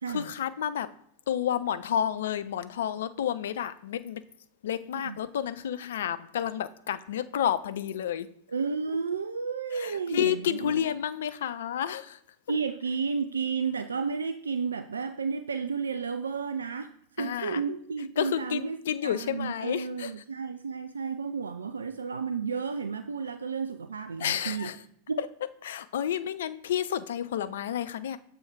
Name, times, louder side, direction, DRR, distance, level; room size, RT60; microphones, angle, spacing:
voice 1, 0.1-0.9 1.3-4.2 4.6-8.3 9.7-12.2 12.5-12.6 17.2-17.6 18.2-20.1 24.2-24.8 25.2-25.3 25.6-28.2, left 10 dB, 60° left, 0.4 m, -30 dB
voice 2, 8.5-10.7 12.5-16.9 17.2-18.8 19.0-24.7 25.1-25.2, right 5 dB, 70° right, 0.3 m, -32 dB
7.0 x 3.4 x 4.7 m
figure-of-eight pair, 90°, 0 cm